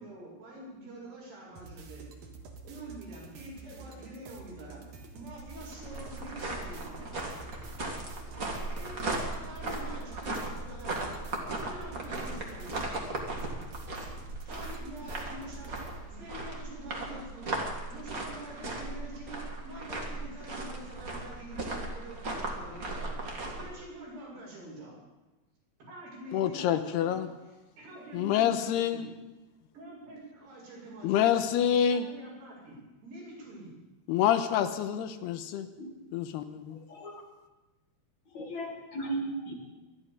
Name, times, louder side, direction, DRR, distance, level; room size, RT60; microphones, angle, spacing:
voice 1, 0.0-2.1 2.6-4.8 5.1-7.4 8.7-13.0 14.5-24.9 25.9-27.2 27.8-29.1 29.7-31.5 31.9-32.7 33.0-33.7, right 1 dB, 80° right, -5 dB, 9.0 m, -46 dB
sound 1, 1.5-16.0, right 3 dB, 55° right, 2.6 m, -48 dB
sound 2, 5.3-23.7, right 2 dB, 30° right, 1.8 m, -37 dB
voice 2, 26.3-27.3 28.1-29.1 31.0-32.0 34.1-35.7 36.1-36.8, left 10 dB, 90° left, 9 dB, 2.9 m, -27 dB
voice 3, 35.7-36.2 36.9-37.2 38.3-39.7, right 2 dB, 50° left, 0 dB, 3.1 m, -37 dB
24.0 x 11.0 x 5.3 m, 1.1 s
omnidirectional pair, 4.7 m